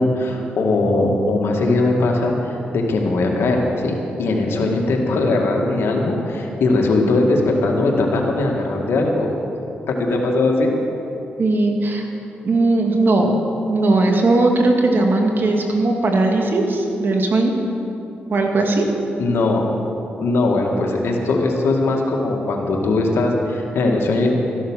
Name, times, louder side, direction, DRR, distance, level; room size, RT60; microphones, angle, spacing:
voice 1, 0.0-9.3 9.9-10.7 19.2-19.7 20.2-24.4, left 2 dB, 75° left, 0 dB, 2.1 m, -19 dB
voice 2, 11.4-12.1 12.4-13.3 13.7-17.5 18.3-18.9, right 2 dB, 55° right, 2 dB, 2.2 m, -18 dB
14.0 x 11.5 x 6.5 m, 2.9 s
cardioid pair, 65°, 4 cm